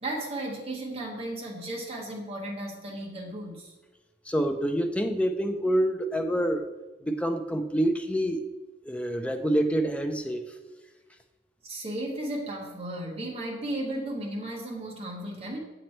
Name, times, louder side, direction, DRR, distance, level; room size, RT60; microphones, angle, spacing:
voice 1, 0.0-3.7 11.6-15.6, right 1 dB, 35° right, -2 dB, 1.1 m, -35 dB
voice 2, 4.3-6.7 7.0-8.4 8.8-10.4, right 1 dB, 5° left, 5 dB, 0.4 m, -27 dB
7.5 x 3.0 x 4.2 m, 1.2 s
head